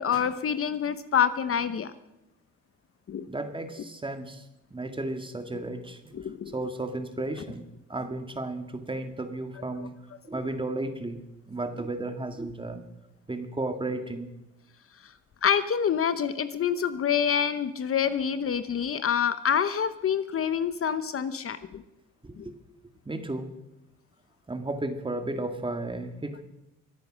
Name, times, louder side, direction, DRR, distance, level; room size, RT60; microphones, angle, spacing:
voice 1, 0.0-1.9 3.1-3.3 6.1-6.5 15.4-21.8 22.4-22.5, left 8 dB, 45° left, 12 dB, 0.9 m, -27 dB
voice 2, 3.3-4.4 4.7-9.9 10.3-11.2 11.5-12.8 13.3-14.3 22.2-22.5 23.1-23.5 24.5-26.4, right 2 dB, 15° right, 7 dB, 1.9 m, -34 dB
24.0 x 9.1 x 6.2 m, 0.93 s
cardioid pair, 90°, 30 cm